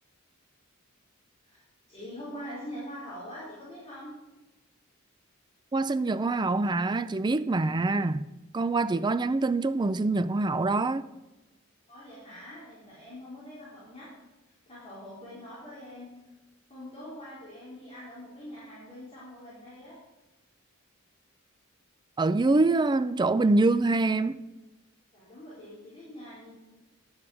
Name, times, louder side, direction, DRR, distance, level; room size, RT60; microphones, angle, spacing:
voice 1, 1.9-4.1 11.9-14.1 14.4-16.1 16.7-20.0 25.1-26.5, equal, 30° left, 4.0 m, -44 dB
voice 2, 5.7-8.3 8.5-11.1 22.2-24.4, right 3 dB, 20° right, 0.4 m, -25 dB
11.0 x 8.9 x 4.9 m
head